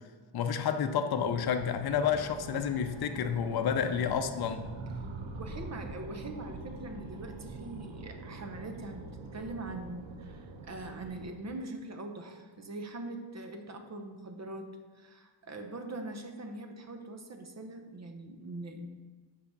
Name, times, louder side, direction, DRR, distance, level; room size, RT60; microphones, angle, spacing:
voice 1, 0.3-4.7, left 7 dB, 55° left, 7 dB, 0.6 m, -30 dB
sound 1, 1.1-11.4, right 3 dB, 75° right, 1.0 m, -44 dB
voice 2, 5.4-18.9, right 2 dB, 35° right, 5 dB, 0.8 m, -42 dB
5.8 x 4.9 x 6.6 m, 1.4 s
wide cardioid pair, 130°, 45 cm